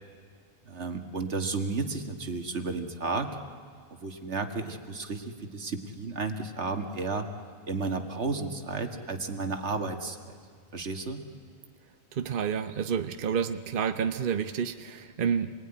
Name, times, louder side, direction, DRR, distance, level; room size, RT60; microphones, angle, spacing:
voice 1, 0.6-3.3 4.0-7.3 7.7-10.4 10.7-11.2, right 3 dB, 85° right, 6 dB, 2.0 m, -32 dB
voice 2, 12.1-15.5, right 7 dB, 55° right, 9 dB, 1.0 m, -29 dB
27.5 x 21.0 x 9.9 m, 2.1 s
omnidirectional pair, 1.1 m